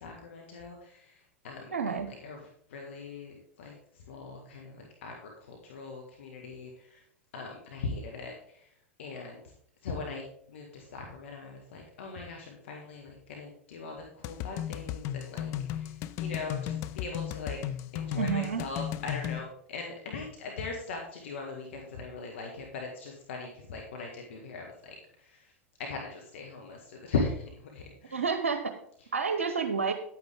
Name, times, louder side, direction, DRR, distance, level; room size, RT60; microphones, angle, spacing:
voice 1, 0.0-1.0 1.4-1.7 2.2-2.4 2.7-3.7 4.1-7.0 7.3-8.3 9.0-9.4 9.8-15.5 15.8-15.9 16.2-17.6 17.9-24.9 25.9-28.2, left 4 dB, 65° left, 1 dB, 1.6 m, -39 dB
voice 2, 1.7-2.1 18.1-18.6 28.1-28.7 29.1-29.9, right 5 dB, 80° right, 7 dB, 0.9 m, -29 dB
sound 1, 14.2-19.4, left 11 dB, 45° left, 0.5 m, -35 dB
10.5 x 8.9 x 3.6 m, 0.66 s
figure-of-eight pair, 90°, 7 cm